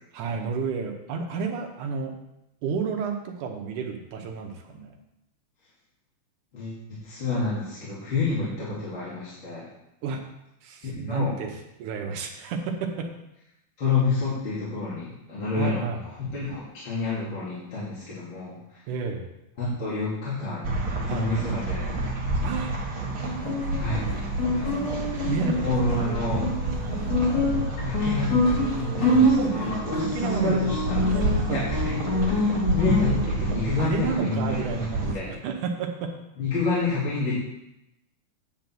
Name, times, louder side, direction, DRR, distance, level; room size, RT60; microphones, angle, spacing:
voice 1, 0.1-2.1 2.6-4.9 10.0-10.2 10.6-13.1 15.6-16.0 18.9-19.3 21.1-21.5 22.4-22.7 25.0-25.7 26.8-27.0 29.4-29.5 29.9-30.7 31.1-31.6 33.8-36.1, right 5 dB, 75° right, 3 dB, 2.4 m, -31 dB
voice 2, 7.0-9.6 11.1-11.3 13.8-15.8 16.2-18.5 19.6-20.7 21.1-21.9 23.8-24.0 24.6-25.0 25.6-26.4 27.8-31.0 31.5-35.3 36.4-37.3, left 3 dB, 40° left, -9 dB, 2.9 m, -29 dB
sound 1, 20.6-35.1, right 2 dB, 45° right, 2.6 m, -29 dB
Guitar, 23.2-33.2, left 1 dB, 70° left, 5.2 m, -26 dB
9.2 x 5.3 x 7.6 m, 0.87 s
omnidirectional pair, 3.7 m